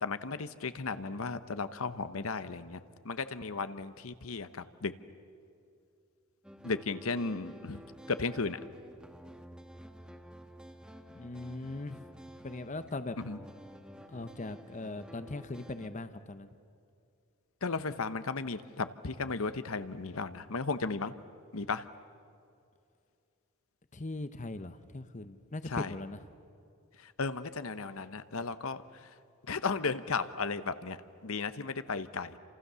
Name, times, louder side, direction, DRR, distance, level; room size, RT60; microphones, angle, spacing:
voice 1, 0.0-4.9 6.6-7.8 8.1-8.6 13.2-13.4 17.6-21.1 21.5-21.9 25.7-25.9 27.0-29.2 29.5-32.4, left 4 dB, 70° left, 12 dB, 0.9 m, -35 dB
sound 1, 6.4-15.9, equal, 5° right, 1.2 m, -51 dB
voice 2, 11.1-12.0 12.4-13.2 14.1-16.5 23.9-26.2, left 2 dB, 35° left, 11 dB, 0.8 m, -40 dB
29.5 x 27.0 x 6.9 m, 2.5 s
head